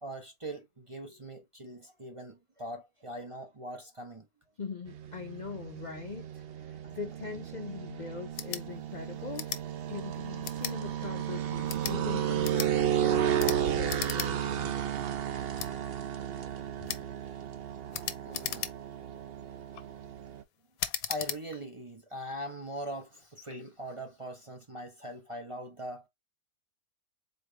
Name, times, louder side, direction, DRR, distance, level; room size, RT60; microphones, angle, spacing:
voice 1, 0.0-4.3 6.8-6.9 18.3-18.7 21.1-26.1, equal, 25° right, 0.7 m, -41 dB
voice 2, 4.6-9.5 9.9-12.7 13.0-14.8, left 5 dB, 50° left, 0.5 m, -41 dB
sound 1, 4.9-20.4, right 10 dB, 60° right, 0.6 m, -33 dB
sound 2, 8.3-8.6 9.3-9.6 10.4-10.8 11.6-12.0 12.4-12.7 13.4-13.6 13.9-14.3 14.6-14.7 15.6-15.7 16.9-17.1 17.9-19.0 19.5-19.9 20.8-21.4, left 10 dB, 75° left, 1.1 m, -36 dB
4.2 x 3.3 x 3.2 m
omnidirectional pair, 1.6 m